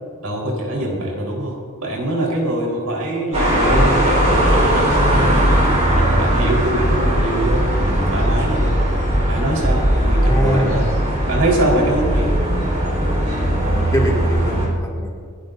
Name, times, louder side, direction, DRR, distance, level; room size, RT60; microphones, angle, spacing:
voice 1, 0.2-1.5 1.8-5.5 5.9-8.9 9.3-10.9 11.3-12.4, right 1 dB, 90° right, -2 dB, 4.3 m, -23 dB
sound 1, 3.3-14.7, right 1 dB, 30° right, 4.3 m, -18 dB
voice 2, 10.2-10.9 13.6-15.3, equal, 15° left, -3 dB, 2.4 m, -23 dB
27.5 x 12.5 x 2.7 m, 2.3 s
head